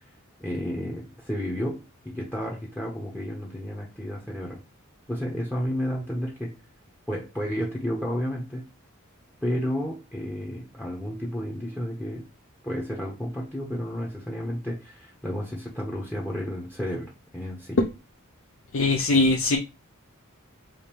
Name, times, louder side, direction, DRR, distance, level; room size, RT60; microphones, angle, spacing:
voice 1, 0.4-4.6 5.1-6.5 7.1-8.7 9.4-12.3 12.6-17.8, equal, 10° left, 0 dB, 0.7 m, -32 dB
voice 2, 18.7-19.6, left 2 dB, 65° left, 2 dB, 0.6 m, -21 dB
5.0 x 2.6 x 2.9 m, 0.28 s
head